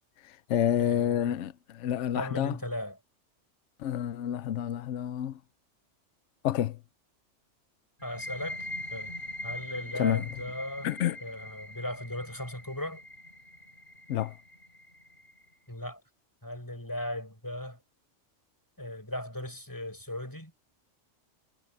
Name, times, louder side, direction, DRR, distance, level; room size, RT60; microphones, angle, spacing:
voice 1, 0.2-2.6 3.8-5.3 6.4-6.8 9.9-10.2 10.8-11.2 14.1-14.3, left 11 dB, 80° left, 0.9 m, -29 dB
voice 2, 0.8-1.4 2.1-3.0 8.0-9.2 9.4-10.9 11.2-13.0 15.7-16.0 16.4-17.8 18.8-20.5, left 1 dB, 15° left, 5.5 m, -37 dB
sound 1, 8.0-15.5, left 1 dB, 45° left, 8.2 m, -42 dB
omnidirectional pair, 1.2 m